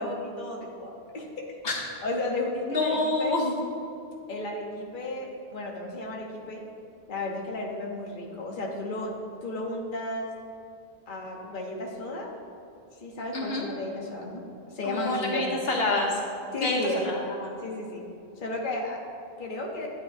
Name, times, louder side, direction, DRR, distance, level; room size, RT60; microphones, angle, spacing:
voice 1, 0.0-3.4 4.3-6.6 7.1-9.1 9.4-10.3 11.1-12.3 13.0-14.4 14.7-15.5 16.5-17.1 17.6-18.0 18.4-19.0 19.4-19.9, left 2 dB, 55° left, -1 dB, 1.2 m, -33 dB
voice 2, 2.7-3.5 13.3-13.7 14.8-16.2 16.6-17.5, left 2 dB, 70° left, -1 dB, 1.2 m, -27 dB
12.0 x 9.3 x 2.7 m, 2.7 s
omnidirectional pair, 1.1 m